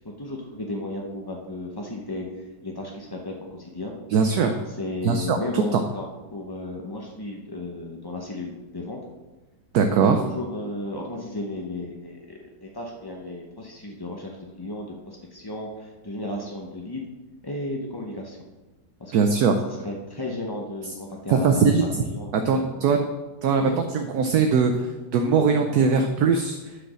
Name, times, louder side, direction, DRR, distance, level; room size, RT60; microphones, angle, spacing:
voice 1, 0.2-3.9 4.7-6.0 6.3-9.0 10.2-17.0 17.4-18.4 19.0-19.4 19.6-21.7 22.0-22.7 23.6-23.8, left 2 dB, 35° left, 0 dB, 0.4 m, -34 dB
voice 2, 4.1-4.6 5.0-5.8 9.7-10.2 19.1-19.6 21.3-21.8 22.3-23.0 23.4-23.7 23.9-26.6, right 5 dB, 70° right, 5 dB, 1.1 m, -21 dB
10.0 x 5.1 x 6.2 m, 1.2 s
omnidirectional pair, 1.9 m